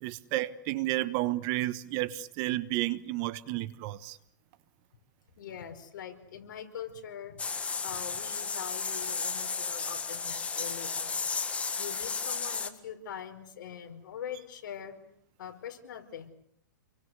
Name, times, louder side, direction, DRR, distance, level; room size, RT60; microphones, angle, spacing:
voice 1, 0.0-4.2, right 17 dB, 35° right, 1.3 m, -31 dB
voice 2, 5.4-7.4 7.8-11.2 11.8-15.0 15.4-16.3, left 9 dB, 65° left, 5.3 m, -42 dB
sound 1, 7.4-12.7, left 5 dB, 10° left, 1.8 m, -33 dB
29.0 x 23.5 x 8.2 m
hypercardioid pair, 145°, 11 cm